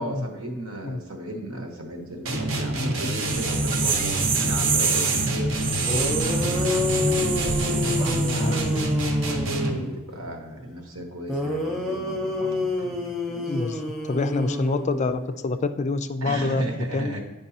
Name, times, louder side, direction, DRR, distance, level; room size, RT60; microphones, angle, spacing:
voice 1, 0.0-5.5 5.9-13.5 16.2-17.2, right 1 dB, 80° right, 3 dB, 1.1 m, -35 dB
sound 1, 2.3-9.9, right 1 dB, 65° right, 0.9 m, -26 dB
sound 2, 3.1-8.9, right 6 dB, 40° right, 0.6 m, -28 dB
sound 3, 5.9-10.0 11.3-15.3, left 2 dB, ahead, 0.7 m, -29 dB
voice 2, 13.5-16.6 16.9-17.2, left 3 dB, 35° left, 10 dB, 0.3 m, -27 dB
8.8 x 5.3 x 2.8 m, 1.1 s
head